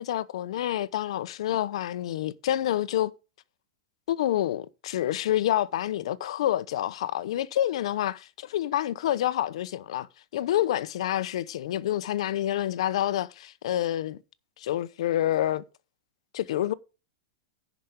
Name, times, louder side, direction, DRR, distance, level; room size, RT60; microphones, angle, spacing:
voice 1, 0.0-3.1 4.1-10.1 10.3-14.2 14.6-15.6 16.3-16.7, left 12 dB, 70° left, 0.8 m, -28 dB
10.5 x 5.1 x 6.7 m
supercardioid pair, 140°, 3 cm